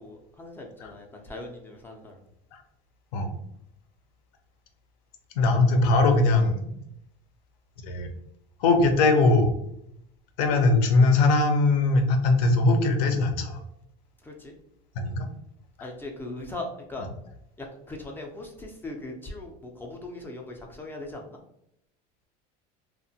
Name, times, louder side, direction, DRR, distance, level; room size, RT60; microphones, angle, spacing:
voice 1, 0.0-2.2 14.2-14.5 15.8-17.1 17.6-21.4, left 2 dB, 10° left, 1 dB, 0.3 m, -39 dB
voice 2, 5.4-6.7 7.8-8.1 8.6-9.5 10.4-13.6 14.9-15.3, left 3 dB, 80° left, 6 dB, 0.6 m, -21 dB
2.9 x 2.1 x 2.6 m, 0.78 s
cardioid pair, 150°, 20 cm